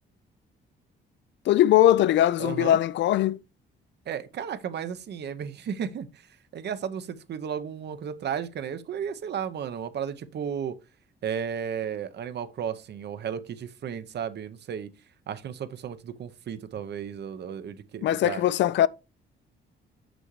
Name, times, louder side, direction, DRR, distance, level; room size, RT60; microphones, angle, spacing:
voice 1, 1.5-3.4 18.0-18.9, left 12 dB, 65° left, 0.4 m, -20 dB
voice 2, 2.4-2.8 4.1-6.3 6.5-10.8 11.2-14.9 15.3-18.4, right 8 dB, 60° right, 0.8 m, -34 dB
6.7 x 6.1 x 3.1 m
cardioid pair, 90°, 20 cm